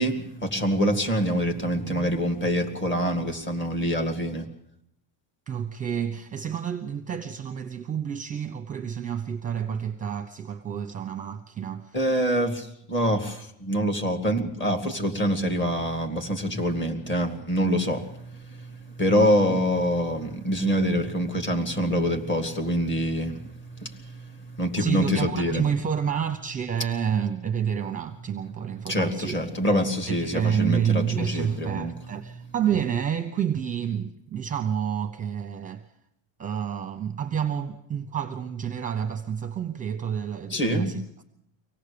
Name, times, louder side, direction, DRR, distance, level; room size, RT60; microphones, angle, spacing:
voice 1, 0.0-4.5 11.9-25.6 28.9-31.9 40.5-40.9, equal, 25° left, 2.1 m, -25 dB
voice 2, 5.5-12.0 19.5-19.6 24.8-29.4 30.1-35.9 36.4-41.2, right 8 dB, 15° right, 0.8 m, -29 dB
24.5 x 18.0 x 6.8 m
cardioid pair, 165°, 47 cm